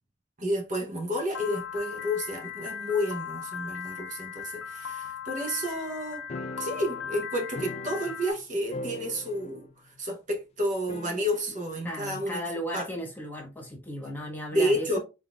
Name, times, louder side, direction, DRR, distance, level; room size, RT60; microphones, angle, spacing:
voice 1, 0.4-6.2 6.6-12.4 12.7-12.9 14.5-15.0, equal, 45° right, 0.9 m, -30 dB
Piano, 1.3-8.3, left 7 dB, 85° left, 0.7 m, -38 dB
sound 1, 6.3-8.4 8.7-9.7 10.0-10.1 10.9-11.7, left 2 dB, 35° left, 0.3 m, -40 dB
voice 2, 11.8-15.0, equal, 10° left, 1.2 m, -35 dB
3.7 x 3.6 x 2.3 m
head